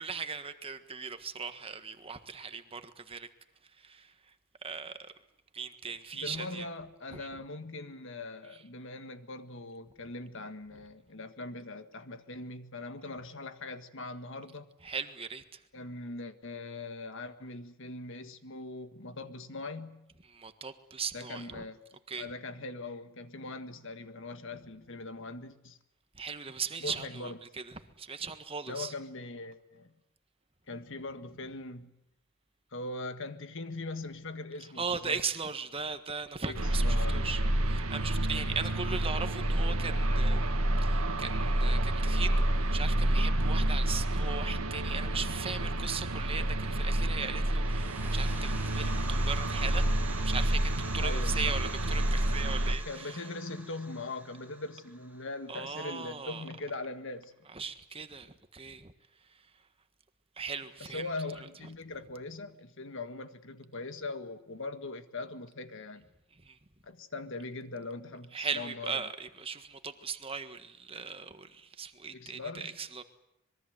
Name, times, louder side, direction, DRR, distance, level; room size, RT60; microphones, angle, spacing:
voice 1, 0.0-3.3 3.8-4.1 4.6-5.1 5.5-6.7 7.1-7.3 14.8-15.6 20.3-21.7 22.1-22.3 26.1-28.9 34.8-53.2 55.5-56.4 57.5-58.9 60.4-61.1 66.4-66.6 68.3-73.0, right 5 dB, 25° right, 1.5 m, -38 dB
voice 2, 6.1-14.7 15.7-20.1 21.1-21.8 22.2-25.8 26.8-27.4 28.7-29.9 30.7-31.9 32.7-35.2 36.5-37.3 38.8-38.9 51.0-51.6 52.9-57.3 60.8-66.1 66.8-69.1 72.1-72.8, left 2 dB, 60° left, 1.7 m, -41 dB
sound 1, 36.5-52.8, right 1 dB, 85° right, 1.8 m, -29 dB
sound 2, 47.6-56.1, right 2 dB, 10° right, 2.4 m, -47 dB
25.5 x 22.0 x 8.0 m
head